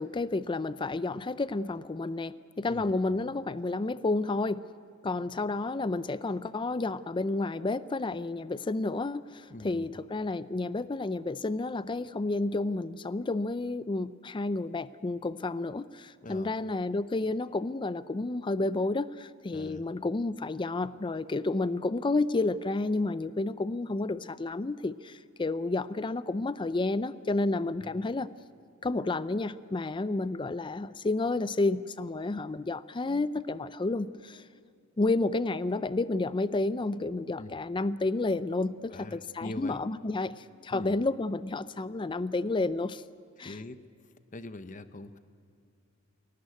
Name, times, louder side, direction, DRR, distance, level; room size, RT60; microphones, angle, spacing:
voice 1, 0.0-4.6 5.0-28.3 28.8-34.4 35.0-43.0 43.4-43.6, left 2 dB, 25° left, 15 dB, 0.4 m, -31 dB
voice 2, 9.5-9.9 16.2-16.5 19.5-19.9 27.8-28.1 37.4-37.5 38.9-39.8 40.7-41.0 43.4-43.8 44.3-45.2, left 2 dB, 40° left, 11 dB, 0.8 m, -42 dB
22.0 x 18.0 x 9.4 m, 2.5 s
head